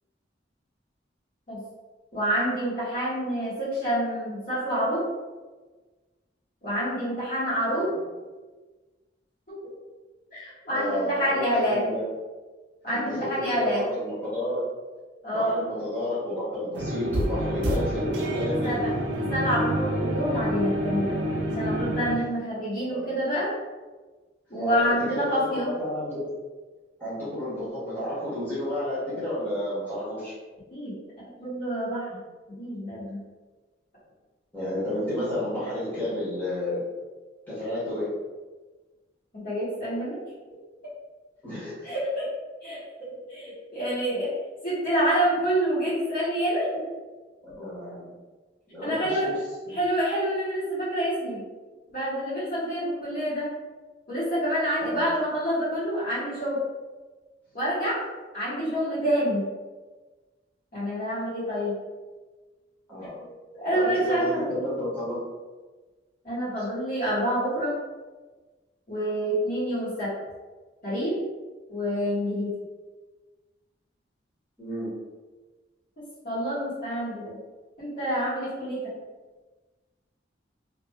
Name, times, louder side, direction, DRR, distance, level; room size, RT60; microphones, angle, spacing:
voice 1, 2.1-5.0 6.6-7.9 9.5-9.6 10.3-11.8 12.8-13.9 15.2-15.7 18.2-18.3 18.6-21.2 21.5-23.5 24.5-25.7 30.7-32.2 32.5-33.2 39.3-40.2 41.8-42.3 42.6-42.8 43.3-44.3 44.6-46.8 48.8-49.3 49.7-51.4 51.9-53.5 54.1-56.6 57.5-58.0 58.3-59.4 60.7-61.7 63.2-64.7 66.2-67.8 68.9-70.1 70.8-71.2 71.7-72.5 76.2-77.4 77.8-78.8, equal, 50° left, -10 dB, 1.3 m, -27 dB
voice 2, 10.7-12.0 12.9-14.6 15.3-18.8 22.8-23.1 24.6-26.3 27.0-30.3 34.5-36.9 37.5-38.1 41.4-41.9 47.4-48.1 48.7-49.3 49.6-49.8 54.8-55.0 62.9-63.2 63.7-65.2 74.6-74.9, left 1 dB, 10° left, -11 dB, 1.2 m, -31 dB
sound 1, 16.7-22.1, right 1 dB, 70° right, 0.5 m, -28 dB
3.0 x 2.9 x 2.2 m, 1.3 s
head